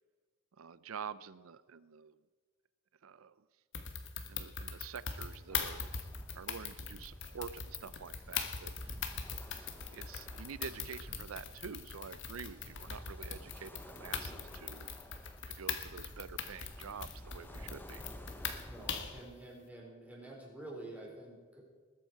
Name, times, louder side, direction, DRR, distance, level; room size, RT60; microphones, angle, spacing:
voice 1, 0.6-2.2 3.0-3.3 4.3-6.0 6.3-8.9 9.4-9.7 9.9-14.9 15.6-18.1, right 6 dB, 75° right, 16 dB, 0.5 m, -47 dB
sound 1, 3.7-19.2, left 7 dB, 60° left, 1.4 m, -41 dB
sound 2, 5.5-19.3, equal, 10° left, 1.0 m, -52 dB
voice 2, 18.6-21.6, right 1 dB, 5° right, -2 dB, 4.0 m, -48 dB
20.5 x 9.0 x 4.7 m, 1.5 s
head